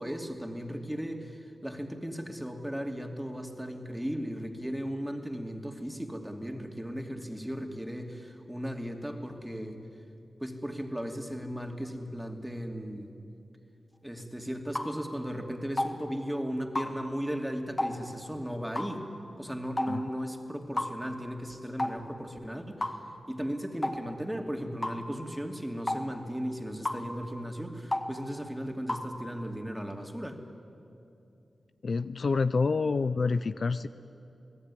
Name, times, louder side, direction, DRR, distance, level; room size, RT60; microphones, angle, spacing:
voice 1, 0.0-9.8 10.4-13.1 14.0-19.1 19.4-23.0 23.3-30.4, equal, 5° right, 3 dB, 2.6 m, -36 dB
sound 1, 14.8-14.9 15.8-15.9 16.8-16.9 17.8-18.0 18.8-18.9 19.8-20.0 20.8-20.9 21.8-22.0 22.8-23.0 23.8-24.0 24.8-25.0 25.9-26.0 26.9-27.0 27.9-28.1 28.9-29.1, left 1 dB, 25° left, 2.0 m, -31 dB
voice 2, 31.8-33.9, left 4 dB, 60° left, 13 dB, 0.6 m, -27 dB
28.5 x 18.5 x 9.9 m, 2.7 s
wide cardioid pair, 80°, 0 cm